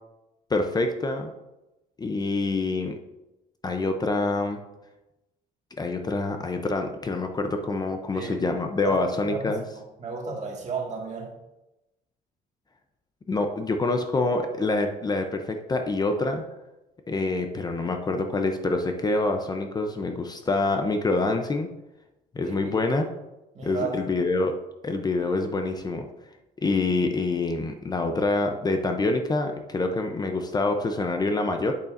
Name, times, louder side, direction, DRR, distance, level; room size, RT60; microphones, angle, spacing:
voice 1, 0.5-1.3 2.0-3.0 3.6-4.6 5.8-9.6 13.3-16.4 17.1-21.7 22.3-23.1 23.6-24.6 24.8-26.1 26.6-31.7, left 3 dB, 25° left, 5 dB, 0.6 m, -26 dB
voice 2, 9.2-11.3 22.4-22.8 23.5-24.0, right 4 dB, 45° right, 0 dB, 2.0 m, -34 dB
8.3 x 6.7 x 2.6 m, 0.97 s
cardioid pair, 110°, 17 cm